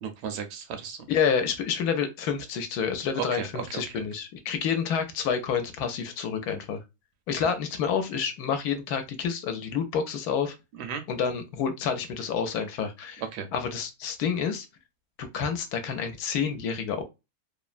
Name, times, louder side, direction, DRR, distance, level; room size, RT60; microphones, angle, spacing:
voice 1, 0.0-1.0 3.2-4.0 10.8-11.0 13.3-13.5, right 7 dB, 80° right, 1.2 m, -35 dB
voice 2, 1.1-6.8 7.3-10.5 11.1-13.2 13.5-14.7 15.2-17.0, left 7 dB, 75° left, 1.1 m, -28 dB
3.2 x 2.0 x 2.4 m
omnidirectional pair, 1.8 m